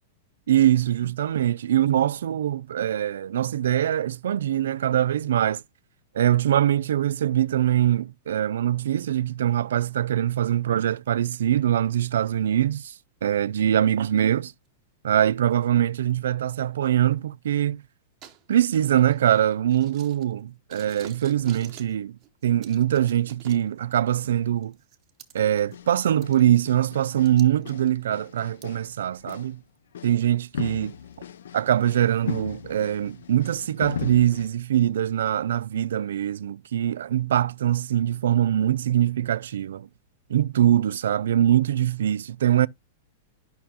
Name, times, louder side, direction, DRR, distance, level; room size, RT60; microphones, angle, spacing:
voice 1, 0.5-5.6 6.1-12.9 13.2-14.5 15.0-17.8 18.5-24.7 25.3-29.6 30.0-30.9 31.5-39.9 40.3-42.7, right 11 dB, 80° right, 0.4 m, -23 dB
sound 1, 14.5-14.7 15.5-16.1 16.8-16.9 18.2-20.4 20.7-22.0 22.2-24.0 24.6-25.8 26.1-28.7 29.3-29.4 29.9-30.0 31.1-31.2 31.8-31.9 32.3-32.4 32.9-33.0 33.4-33.9, right 10 dB, 20° right, 0.9 m, -48 dB
sound 2, 25.6-26.0 26.2-27.4 27.7-28.9 29.2-29.5 29.9-30.2 30.5-34.5, left 8 dB, 85° left, 0.5 m, -38 dB
11.5 x 5.5 x 2.8 m
supercardioid pair, 175°, 0 cm